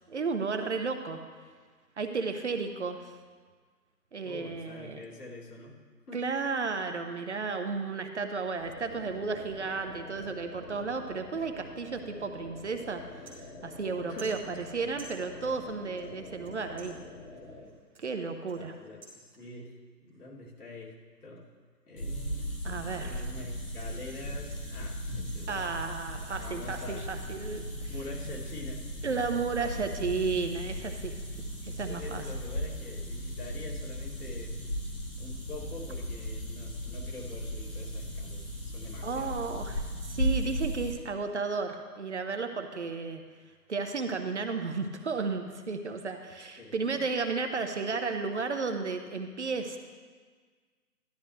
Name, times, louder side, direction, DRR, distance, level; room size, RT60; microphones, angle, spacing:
voice 1, 0.1-1.2 2.0-3.1 4.1-5.0 6.1-17.0 18.0-18.7 22.6-23.2 25.5-27.9 29.0-31.2 31.6-32.2 39.0-43.2 43.7-49.8, right 4 dB, 45° right, 6 dB, 0.8 m, -33 dB
voice 2, 4.2-5.8 6.1-6.2 14.1-14.4 18.5-19.8 20.0-21.5 21.9-22.5 22.7-25.7 26.2-27.1 27.8-28.8 31.8-34.6 35.2-39.3 46.6-47.0, left 2 dB, 65° left, -4 dB, 2.9 m, -45 dB
sound 1, 8.6-17.7, left 2 dB, 45° left, 2.3 m, -47 dB
sound 2, 13.3-13.9 14.2-15.7 16.0-16.5 16.8-19.7 20.1-20.4 20.8-23.3 23.6-25.5, right 2 dB, 5° right, 1.3 m, -55 dB
sound 3, 22.0-40.9, equal, 20° left, 1.5 m, -36 dB
12.0 x 11.0 x 3.2 m, 1.5 s
figure-of-eight pair, 155°, 49 cm